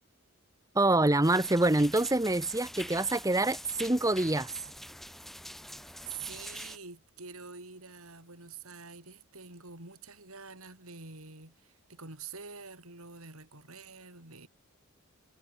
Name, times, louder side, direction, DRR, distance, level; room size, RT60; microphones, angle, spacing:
voice 1, 0.7-4.5, right 2 dB, 15° right, 1.1 m, -26 dB
sound 1, 1.2-6.8, equal, ahead, 4.2 m, -45 dB
voice 2, 6.0-14.5, right 5 dB, 75° right, 6.6 m, -46 dB
head